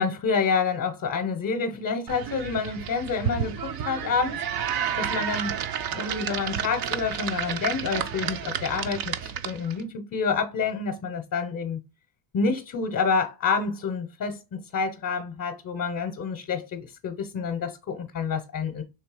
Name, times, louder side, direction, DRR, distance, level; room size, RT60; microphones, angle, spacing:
voice 1, 0.0-4.4 5.0-5.5 5.9-11.8 12.3-18.8, left 5 dB, 35° left, 0.7 m, -28 dB
sound 1, 2.1-9.8, right 8 dB, 45° right, 0.6 m, -31 dB
3.3 x 3.1 x 4.8 m
cardioid pair, 125°, 50 cm